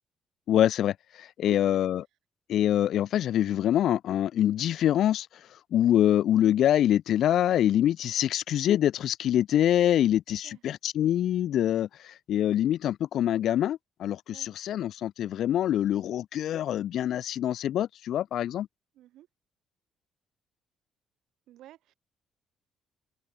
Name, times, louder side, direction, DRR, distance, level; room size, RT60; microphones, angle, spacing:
voice 1, 0.5-2.0 2.5-5.3 5.7-18.7, left 11 dB, 70° left, 0.4 m, -25 dB
voice 2, 1.4-1.8 10.3-10.6 14.3-14.5 18.9-19.3 21.5-21.9, right 14 dB, 75° right, 5.9 m, -50 dB
open air
supercardioid pair, 65°, 0 cm